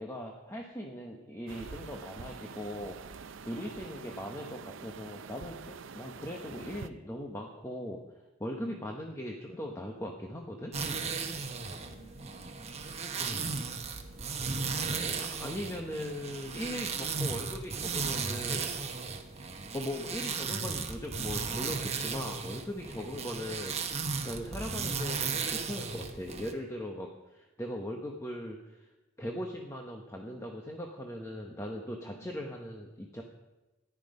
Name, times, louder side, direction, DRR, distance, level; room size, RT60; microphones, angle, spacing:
voice 1, 0.0-3.0 3.4-8.1 8.4-10.7 13.2-13.5 15.2-18.7 19.7-28.9 29.2-33.2, left 1 dB, 15° left, 1 dB, 1.0 m, -39 dB
sound 1, 1.5-6.9, right 5 dB, 65° right, 0.5 m, -46 dB
voice 2, 8.6-8.9 11.5-12.9 16.7-17.0 32.0-32.4, right 1 dB, 30° left, 0 dB, 3.4 m, -56 dB
sound 2, 10.7-26.5, right 5 dB, 30° right, 1.1 m, -35 dB
14.5 x 11.0 x 5.3 m, 1.1 s
head